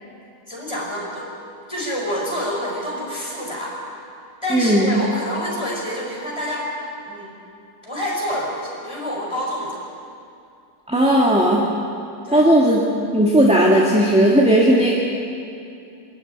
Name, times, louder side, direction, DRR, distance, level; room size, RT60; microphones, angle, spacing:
voice 1, 0.5-1.3 1.7-3.8 4.4-6.7 7.1-7.3 7.8-9.8 12.2-12.4, equal, 15° left, -4 dB, 6.0 m, -27 dB
voice 2, 4.5-4.9 10.9-11.6 12.3-12.8 13.1-14.9, right 1 dB, 5° right, -3 dB, 2.0 m, -15 dB
24.0 x 13.5 x 10.0 m, 2.6 s
omnidirectional pair, 1.7 m